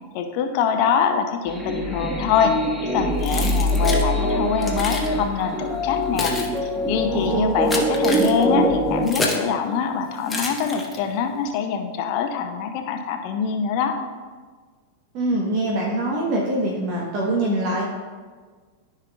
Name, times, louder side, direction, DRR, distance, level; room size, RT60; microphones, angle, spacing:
voice 1, 0.1-2.5 2.8-6.3 6.9-14.0, left 7 dB, 45° left, 5 dB, 0.7 m, -24 dB
sound 1, 1.5-9.0, equal, 10° right, 1.1 m, -23 dB
Keys jangling, 3.2-4.1 4.6-5.1 5.8-9.5 10.3-11.2, left 2 dB, 10° left, 1.2 m, -29 dB
voice 2, 7.1-7.5 15.1-17.8, right 1 dB, 40° right, -2 dB, 1.2 m, -23 dB
13.5 x 5.5 x 2.5 m, 1.5 s
figure-of-eight pair, 90°, 0 cm